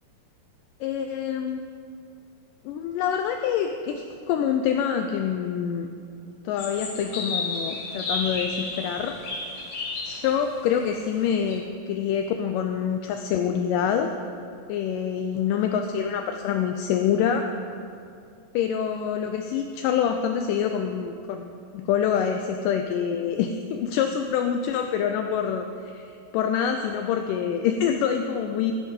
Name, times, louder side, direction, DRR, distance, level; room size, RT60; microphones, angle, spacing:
voice 1, 0.8-1.6 2.7-5.9 6.5-9.2 10.0-14.1 14.7-17.5 18.5-25.7 25.9-28.7, left 8 dB, 80° left, 5 dB, 2.1 m, -26 dB
sound 1, 6.6-11.6, left 3 dB, 65° left, 2.9 m, -32 dB
14.5 x 7.3 x 5.3 m, 2.5 s
omnidirectional pair, 4.0 m